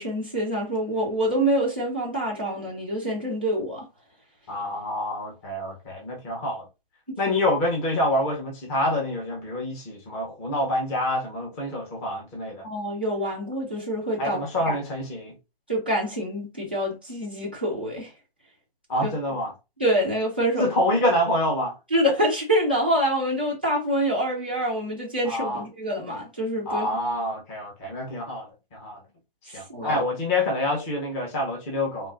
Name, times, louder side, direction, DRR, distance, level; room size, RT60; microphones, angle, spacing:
voice 1, 0.0-3.8 7.3-7.4 12.6-14.8 15.7-18.1 19.0-19.1 19.8-20.7 21.9-26.9 29.5-30.0, equal, 10° right, 0.3 m, -26 dB
voice 2, 4.5-6.7 7.2-12.6 14.2-15.3 18.9-19.5 20.6-21.7 25.2-25.6 26.7-29.0 29.5-32.1, left 1 dB, 15° left, 0.7 m, -27 dB
3.7 x 2.9 x 2.5 m
hypercardioid pair, 155°, 31 cm